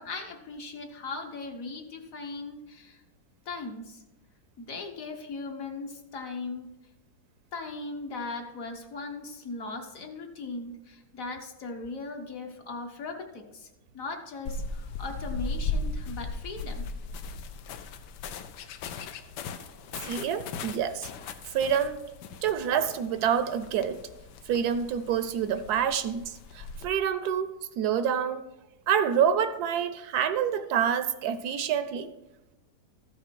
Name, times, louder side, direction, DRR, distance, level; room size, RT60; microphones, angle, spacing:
voice 1, 0.0-3.0 3.4-4.0 4.6-6.7 7.5-13.7 13.9-16.8, left 3 dB, 55° left, 3 dB, 1.3 m, -38 dB
sound 1, 14.5-26.9, left 3 dB, 85° left, 1.3 m, -38 dB
voice 2, 20.0-21.1 21.5-22.0 22.4-24.0 24.5-27.5 27.8-28.4 28.9-32.1, right 8 dB, 75° right, 10 dB, 1.1 m, -27 dB
13.5 x 6.0 x 4.6 m, 0.99 s
omnidirectional pair, 1.8 m